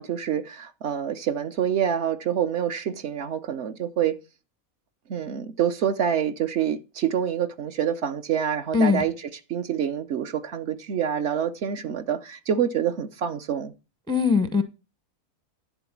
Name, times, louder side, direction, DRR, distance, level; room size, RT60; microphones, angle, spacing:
voice 1, 0.0-4.1 5.1-9.1 9.5-13.7, right 9 dB, 60° right, 0.9 m, -26 dB
voice 2, 8.7-9.0 14.1-14.6, left 5 dB, 5° left, 0.4 m, -20 dB
11.0 x 3.7 x 7.2 m
omnidirectional pair, 1.5 m